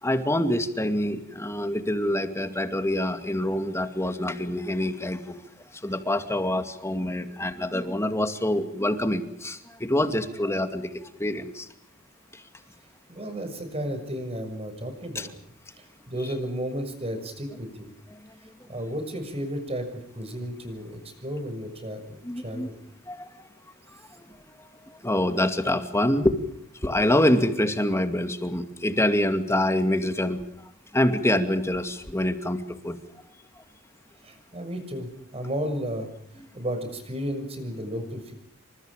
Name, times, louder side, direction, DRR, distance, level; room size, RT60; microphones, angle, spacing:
voice 1, 0.0-5.3 5.7-11.7 12.3-12.4 15.1-15.3 16.2-16.3 18.1-18.2 22.2-22.7 23.0-23.5 23.9-24.3 24.6-26.4 26.8-30.4 30.9-33.0, left 1 dB, 15° left, 8 dB, 2.4 m, -26 dB
voice 2, 13.1-15.3 15.8-17.9 18.7-22.8 34.2-36.1 36.5-38.3, equal, 30° right, 7 dB, 6.8 m, -33 dB
29.0 x 26.0 x 5.1 m, 0.67 s
head